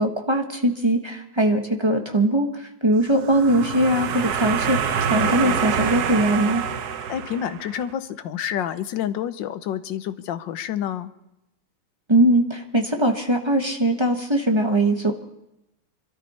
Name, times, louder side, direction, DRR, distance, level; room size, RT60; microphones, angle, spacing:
voice 1, 0.0-6.6 12.1-15.1, right 1 dB, 15° right, 3 dB, 1.0 m, -21 dB
sound 1, 3.1-7.8, right 7 dB, 60° right, 1.2 m, -26 dB
voice 2, 5.1-5.6 7.1-11.1, left 10 dB, 70° left, 12 dB, 1.4 m, -29 dB
25.0 x 13.0 x 4.3 m, 0.86 s
omnidirectional pair, 2.3 m